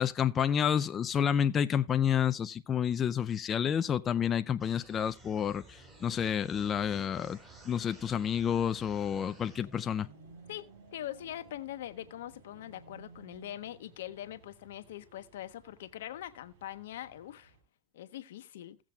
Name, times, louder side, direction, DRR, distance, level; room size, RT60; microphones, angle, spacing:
voice 1, 0.0-7.4 7.7-10.1, left 8 dB, 25° left, 0.4 m, -29 dB
sound 1, 4.6-9.6, right 1 dB, 10° right, 4.9 m, -54 dB
sound 2, 5.4-17.6, right 4 dB, 60° right, 5.0 m, -58 dB
voice 2, 10.5-17.5 17.9-18.8, left 12 dB, 75° left, 1.0 m, -43 dB
17.0 x 7.4 x 2.3 m
hypercardioid pair, 120°, 0 cm